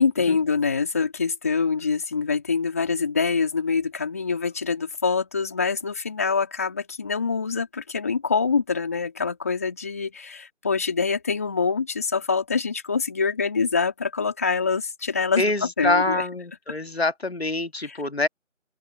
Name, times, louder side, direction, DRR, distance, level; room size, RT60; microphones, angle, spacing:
voice 1, 0.0-16.2 17.8-18.0, left 5 dB, 10° left, 3.4 m, -25 dB
voice 2, 15.4-18.3, left 2 dB, 55° left, 1.8 m, -25 dB
figure-of-eight pair, 175°, 38 cm